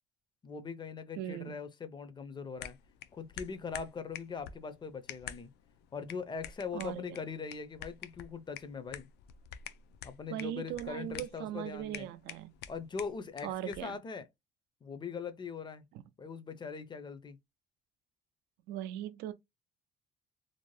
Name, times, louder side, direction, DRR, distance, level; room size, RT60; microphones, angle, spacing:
voice 1, 0.4-2.8 3.1-5.5 5.9-9.1 10.0-12.1 12.7-14.3 14.8-15.9 16.2-17.4, left 5 dB, 25° left, 0.5 m, -41 dB
voice 2, 1.2-1.6 6.7-7.0 10.3-12.5 13.4-14.0 15.9-16.0 18.7-19.3, right 12 dB, 90° right, 0.4 m, -39 dB
sound 1, 2.6-14.0, left 10 dB, 80° left, 0.4 m, -49 dB
2.6 x 2.0 x 3.1 m
cardioid pair, 110°, 17 cm